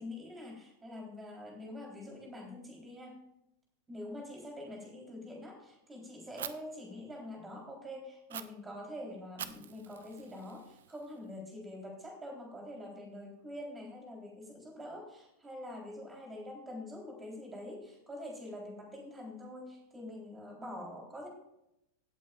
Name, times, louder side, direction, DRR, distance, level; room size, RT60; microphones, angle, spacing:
voice 1, 0.0-3.2 3.9-21.3, left 1 dB, 15° right, 0 dB, 3.9 m, -45 dB
Fire, 6.4-6.5 8.3-8.4 9.4-11.3, right 9 dB, 60° right, 0.7 m, -45 dB
17.0 x 8.3 x 2.5 m, 0.83 s
figure-of-eight pair, 90°, 0 cm